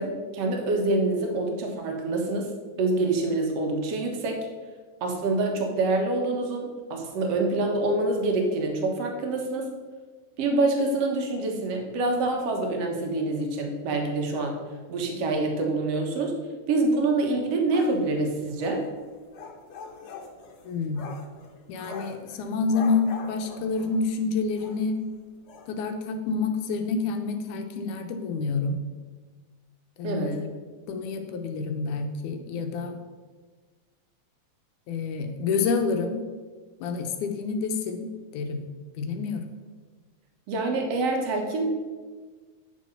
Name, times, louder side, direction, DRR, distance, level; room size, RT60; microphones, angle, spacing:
voice 1, 0.0-2.5 2.8-4.5 5.0-9.7 10.4-14.6 14.9-16.4 16.7-18.8 30.0-30.4 40.5-41.8, right 2 dB, 60° right, 2 dB, 2.2 m, -26 dB
sound 1, 17.7-24.2 24.6-24.8 25.1-25.2 25.5-25.7, left 5 dB, 65° left, 2.0 m, -43 dB
voice 2, 20.6-21.0 21.7-25.0 25.7-28.8 30.0-30.5 30.9-33.0 34.9-36.2 36.8-38.6 39.0-39.4, left 4 dB, 80° left, 6 dB, 2.2 m, -28 dB
9.3 x 6.3 x 5.5 m, 1.4 s
omnidirectional pair, 3.6 m